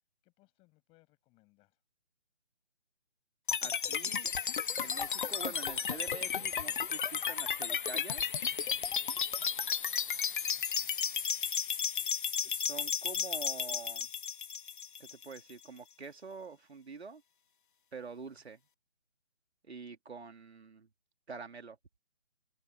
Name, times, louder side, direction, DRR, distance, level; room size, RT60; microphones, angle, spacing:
voice 1, 0.2-1.8 9.9-11.5 20.1-20.4, left 23 dB, 15° left, 7.2 m, -71 dB
sound 1, 3.5-15.5, left 7 dB, 50° left, 0.5 m, -33 dB
voice 2, 3.6-4.3 4.8-8.2 12.4-14.1 15.0-17.2 17.9-18.6 19.6-20.9 21.3-21.8, right 5 dB, 65° right, 3.0 m, -46 dB
open air
figure-of-eight pair, 150°, 34 cm